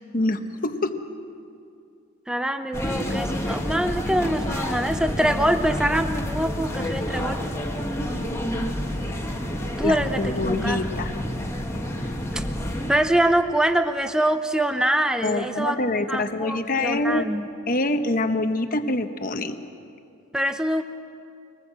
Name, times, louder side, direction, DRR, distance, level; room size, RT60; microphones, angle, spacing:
voice 1, 0.1-1.0 9.8-11.1 15.2-17.3 17.7-19.6, left 2 dB, 40° left, 7 dB, 1.1 m, -25 dB
voice 2, 2.3-7.4 9.8-10.9 12.3-12.5 12.9-17.5 20.3-20.8, right 1 dB, 5° right, 8 dB, 0.6 m, -24 dB
sound 1, 2.7-12.9, equal, 10° left, 1.5 m, -29 dB
24.5 x 19.5 x 7.6 m, 2.5 s
head